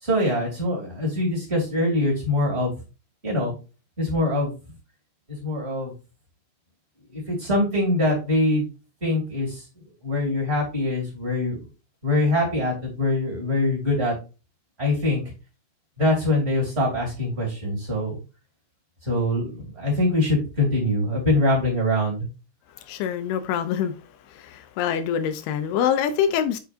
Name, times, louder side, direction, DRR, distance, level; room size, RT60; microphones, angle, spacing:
voice 1, 0.0-2.7 3.2-3.5 4.0-4.5 5.3-5.9 7.1-8.7 9.0-9.6 10.0-11.6 12.0-14.1 14.8-15.2 16.0-18.2 19.0-22.3, left 1 dB, 20° right, 2.2 m, -23 dB
voice 2, 22.9-23.9 24.4-26.6, left 8 dB, 80° left, 2.4 m, -25 dB
8.0 x 4.7 x 2.5 m
omnidirectional pair, 4.8 m